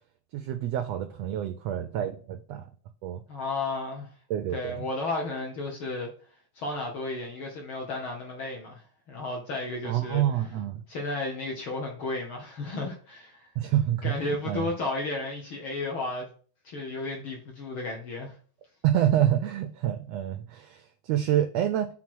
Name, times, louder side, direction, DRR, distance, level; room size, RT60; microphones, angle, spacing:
voice 1, 0.3-2.7 3.0-3.2 4.3-4.9 9.8-10.8 13.6-14.7 18.8-21.9, right 11 dB, 85° right, 1.5 m, -27 dB
voice 2, 3.3-4.1 4.5-6.1 6.5-10.4 10.9-13.5 14.0-16.3 16.6-18.4, left 2 dB, 60° left, 1.5 m, -33 dB
6.2 x 4.0 x 6.0 m
omnidirectional pair, 3.5 m